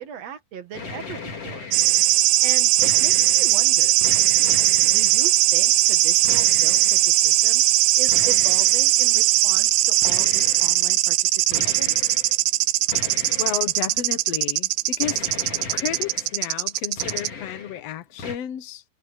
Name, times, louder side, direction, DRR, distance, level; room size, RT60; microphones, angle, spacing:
voice 1, 0.0-1.7 2.4-4.0 4.8-7.6 8.0-11.9, right 9 dB, 50° right, 2.5 m, -38 dB
sound 1, 0.7-2.2 2.6-3.6 4.0-5.3 6.2-7.1 8.1-8.9 10.0-10.9 11.5-12.4 12.9-14.0 15.0-16.4 16.7-17.8 18.2-18.4, left 4 dB, 40° left, 4.2 m, -37 dB
sound 2, 1.7-17.3, right 17 dB, 85° right, 2.6 m, -19 dB
voice 2, 13.4-15.3 15.7-18.8, left 11 dB, 65° left, 1.7 m, -32 dB
omnidirectional pair, 4.6 m